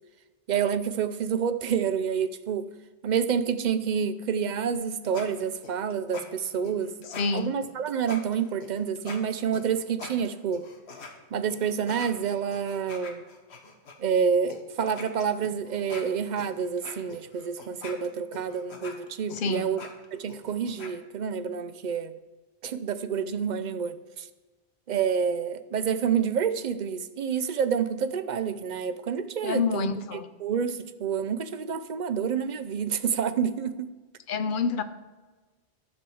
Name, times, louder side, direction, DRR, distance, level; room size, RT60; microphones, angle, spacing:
voice 1, 0.5-2.7 3.0-6.9 7.3-10.7 11.3-13.2 14.0-19.8 20.1-22.1 22.6-24.3 24.9-33.9, right 7 dB, 50° right, 0.6 m, -28 dB
sound 1, 4.7-11.1 11.5-13.9 14.5-14.6 14.9-20.9, left 4 dB, 70° left, 1.4 m, -43 dB
voice 2, 7.2-7.5 19.3-19.7 29.4-30.3 34.3-34.8, left 5 dB, 55° left, 0.7 m, -27 dB
11.5 x 5.4 x 7.0 m
omnidirectional pair, 1.1 m